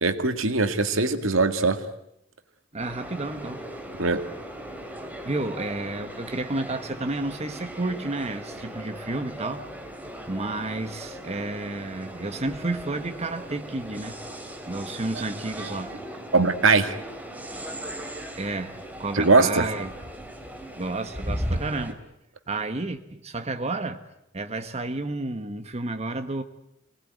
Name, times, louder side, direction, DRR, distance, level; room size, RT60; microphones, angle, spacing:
voice 1, 0.0-1.8 4.0-4.2 15.6-15.7 16.3-17.0 19.1-19.7, right 3 dB, 85° right, 9 dB, 1.9 m, -21 dB
voice 2, 2.7-3.6 5.2-9.7 10.3-14.1 14.7-15.9 18.4-19.9 20.8-22.0 22.5-24.0 24.3-26.4, right 2 dB, 30° right, 7 dB, 1.3 m, -31 dB
sound 1, 2.8-21.9, equal, 10° right, 2.8 m, -38 dB
26.0 x 19.0 x 9.4 m, 0.81 s
head